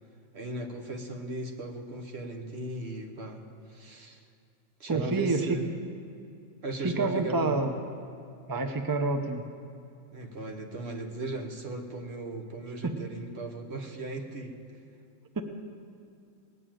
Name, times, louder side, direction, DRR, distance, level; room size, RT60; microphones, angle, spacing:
voice 1, 0.3-4.2 4.8-5.7 6.6-7.6 10.1-14.6, right 2 dB, 50° right, 3 dB, 1.4 m, -37 dB
voice 2, 4.9-5.6 6.8-7.8 8.5-9.5 12.8-12.9 15.4-15.5, right 3 dB, 20° right, 6 dB, 0.6 m, -28 dB
19.0 x 6.8 x 9.0 m, 2.5 s
omnidirectional pair, 1.4 m